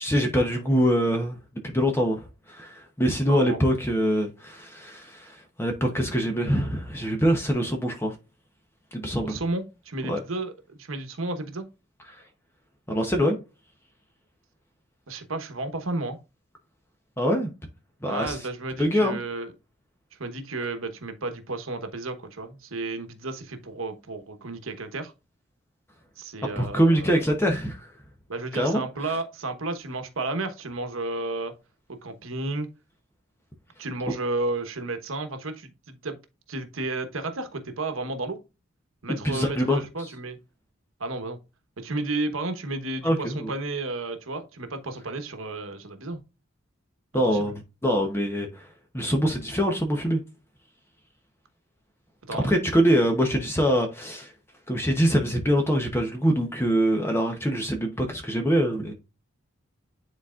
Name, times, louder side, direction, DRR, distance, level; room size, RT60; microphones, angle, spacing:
voice 1, 0.0-1.4 1.6-8.1 8.9-9.4 10.1-10.2 12.1-12.2 12.9-13.4 17.2-17.5 18.0-18.5 18.8-19.2 26.6-27.9 28.5-28.8 34.1-34.2 39.1-40.1 43.0-43.5 47.1-48.7 48.9-50.2 52.4-54.3 54.7-58.9, equal, 10° left, 0.8 m, -24 dB
voice 2, 3.3-3.6 9.2-11.7 15.1-16.2 18.0-19.5 20.2-25.1 26.2-27.1 28.3-31.5 31.9-32.7 33.8-36.2 36.5-38.4 39.0-40.4 41.0-41.4 41.8-46.2 47.1-47.5 52.3-52.5, right 2 dB, 75° right, 1.1 m, -32 dB
9.9 x 4.1 x 2.4 m
head